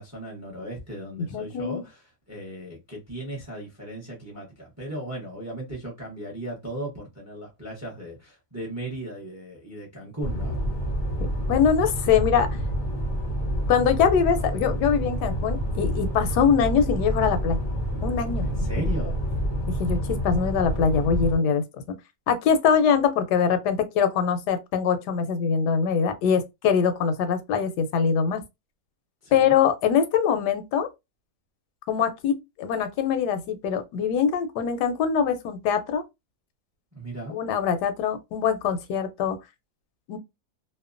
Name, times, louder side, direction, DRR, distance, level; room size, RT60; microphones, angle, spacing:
voice 1, 0.0-10.6 18.4-19.2 29.2-29.6 36.9-37.4, right 1 dB, 20° right, 0.4 m, -36 dB
voice 2, 1.3-1.8 11.5-12.5 13.7-17.6 18.0-18.5 19.8-22.0 22.3-28.4 29.3-30.9 31.9-36.0 37.3-39.4 40.1-40.2, left 7 dB, 85° left, 1.2 m, -23 dB
sound 1, 10.2-21.3, equal, 45° left, 0.7 m, -28 dB
2.8 x 2.1 x 2.4 m
omnidirectional pair, 1.7 m